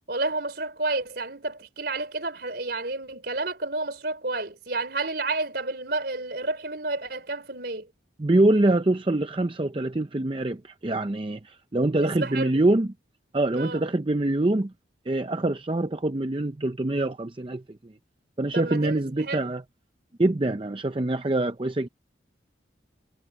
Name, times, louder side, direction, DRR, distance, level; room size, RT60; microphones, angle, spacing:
voice 1, 0.1-7.9 12.0-12.6 13.6-13.8 18.5-19.5, right 2 dB, 55° right, 4.2 m, -30 dB
voice 2, 8.2-12.9 13.3-14.7 15.1-17.6 18.4-19.6 20.2-21.9, right 2 dB, 30° right, 0.6 m, -24 dB
head